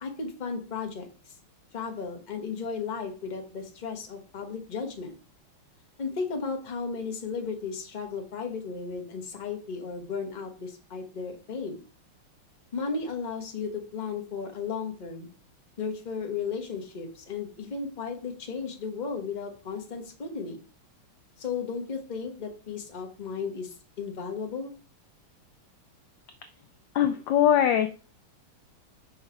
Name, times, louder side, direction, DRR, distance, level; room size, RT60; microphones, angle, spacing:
voice 1, 0.0-1.3 1.7-5.2 6.0-11.8 12.7-15.3 15.8-20.6 21.4-24.7, left 5 dB, 25° left, 4 dB, 1.0 m, -35 dB
voice 2, 26.9-27.9, left 10 dB, 75° left, 9 dB, 1.1 m, -21 dB
5.6 x 5.2 x 4.7 m, 0.37 s
omnidirectional pair, 2.4 m